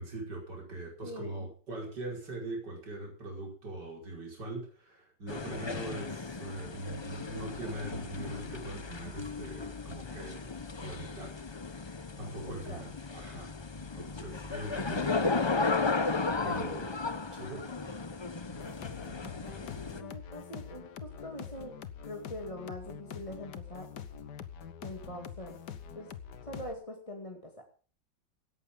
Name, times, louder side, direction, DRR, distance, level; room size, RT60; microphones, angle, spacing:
voice 1, 0.0-10.5 10.8-11.8 12.2-15.5 16.4-16.9 17.3-17.6, right 2 dB, 65° right, -1 dB, 5.9 m, -42 dB
voice 2, 1.0-1.5 12.5-12.8 16.6-16.8 19.9-23.9 24.8-25.6 25.9-26.1 26.4-27.6, left 1 dB, 15° left, 1 dB, 2.4 m, -43 dB
sound 1, 5.3-20.0, left 4 dB, 40° left, 0.3 m, -35 dB
sound 2, 18.5-26.7, left 8 dB, 65° left, 1.7 m, -45 dB
18.0 x 14.5 x 3.8 m, 0.41 s
omnidirectional pair, 2.0 m